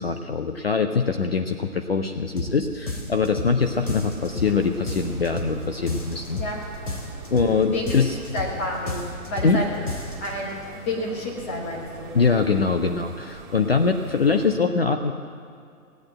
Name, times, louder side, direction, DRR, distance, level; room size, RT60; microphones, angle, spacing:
voice 1, 0.0-6.4 7.3-8.2 9.4-9.6 12.1-15.1, left 5 dB, 45° left, 6 dB, 0.6 m, -23 dB
sound 1, 2.4-2.6 2.9-3.6 3.9-4.6 4.9-5.6 5.9-6.6 6.9-7.6 7.9-8.6 8.9-9.6 9.9-10.3, left 2 dB, 85° left, 3.1 m, -32 dB
sound 2, 3.6-14.5, right 2 dB, 25° right, 1.7 m, -43 dB
voice 2, 8.3-9.0 9.3-9.7 10.2-12.1, left 1 dB, 10° left, -3 dB, 0.9 m, -29 dB
17.0 x 8.9 x 7.7 m, 2.3 s
hypercardioid pair, 160°, 44 cm